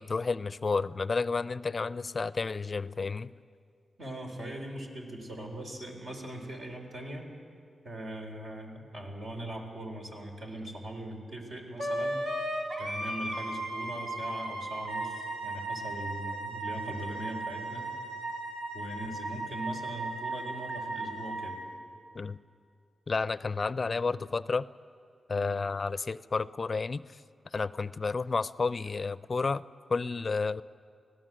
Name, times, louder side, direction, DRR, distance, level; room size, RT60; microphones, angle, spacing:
voice 1, 0.0-3.3 22.1-22.4 23.1-24.6 25.3-27.0 27.5-29.6 29.9-30.6, left 4 dB, 45° left, 17 dB, 0.4 m, -31 dB
voice 2, 4.0-7.3 7.8-12.2 12.8-17.9 18.7-21.6, right 1 dB, 70° right, 1 dB, 4.3 m, -40 dB
Wind instrument woodwind instrument, 11.8-21.7, right 2 dB, 90° right, 2.8 m, -36 dB
25.5 x 16.5 x 7.6 m, 2.4 s
cardioid pair, 60°, 0 cm